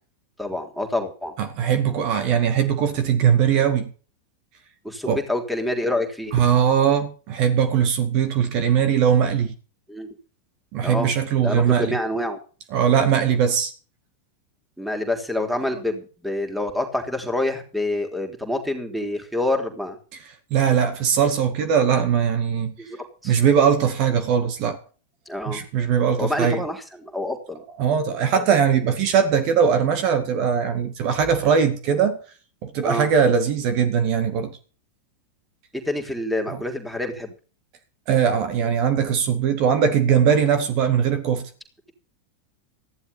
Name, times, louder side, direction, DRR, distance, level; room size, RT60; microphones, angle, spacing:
voice 1, 0.4-1.3 4.8-6.4 9.9-10.1 10.8-11.1 11.4-12.4 14.8-20.0 22.8-23.4 25.3-25.7 26.2-27.6 32.8-33.1 35.7-37.3, left 1 dB, ahead, 3.5 m, -27 dB
voice 2, 1.4-3.9 5.1-5.2 6.3-9.5 10.7-12.0 12.7-13.7 20.5-22.7 23.2-24.8 25.5-26.6 27.8-32.2 32.6-34.6 38.1-41.5, right 7 dB, 45° right, 2.0 m, -20 dB
15.0 x 11.5 x 5.5 m
figure-of-eight pair, 90°, 0 cm